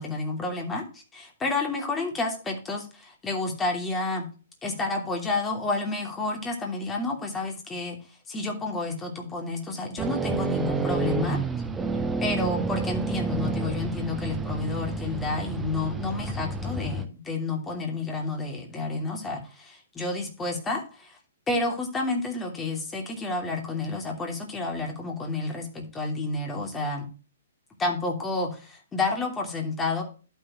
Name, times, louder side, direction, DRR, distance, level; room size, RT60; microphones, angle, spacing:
voice 1, 0.0-4.3 4.6-8.0 8.3-11.4 11.9-21.2 21.5-27.1 27.8-30.0, left 3 dB, 15° left, 2 dB, 2.9 m, -30 dB
sound 1, 10.0-17.1, right 4 dB, 10° right, 0.9 m, -29 dB
12.0 x 7.2 x 3.1 m, 0.35 s
figure-of-eight pair, 120°, 0 cm